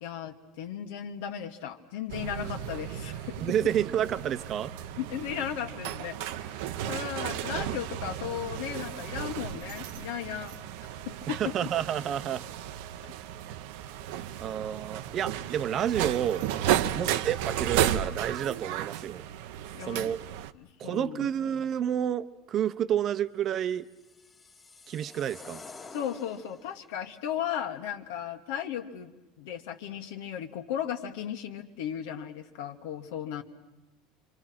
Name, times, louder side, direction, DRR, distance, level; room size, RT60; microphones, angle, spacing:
voice 1, 0.0-3.4 4.9-11.4 16.8-17.2 19.7-20.2 20.5-21.3 25.9-33.4, left 9 dB, 80° left, 6 dB, 1.7 m, -36 dB
sound 1, 2.1-20.5, right 11 dB, 75° right, 0.8 m, -34 dB
voice 2, 3.4-4.7 11.4-12.4 13.5-13.6 14.0-16.5 16.9-19.2 19.9-20.2 20.8-23.9 24.9-25.6, right 9 dB, 40° right, 14 dB, 0.8 m, -30 dB
sound 2, 23.7-26.9, left 4 dB, 20° left, 1.7 m, -49 dB
26.0 x 25.5 x 6.0 m, 1.1 s
supercardioid pair, 120°, 0 cm